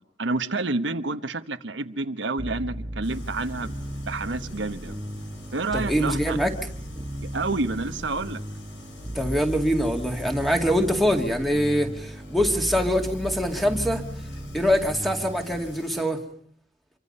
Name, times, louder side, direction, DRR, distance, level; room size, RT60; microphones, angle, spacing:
voice 1, 0.2-3.7 4.1-5.0 5.5-6.4 7.2-8.4, right 3 dB, 80° right, 1.2 m, -29 dB
sound 1, 2.4-15.7, equal, 20° right, 1.4 m, -36 dB
sound 2, 3.0-16.1, left 1 dB, 85° left, 5.1 m, -45 dB
voice 2, 5.7-6.5 9.1-14.0 14.5-16.2, equal, ahead, 2.3 m, -24 dB
27.0 x 23.5 x 5.6 m
head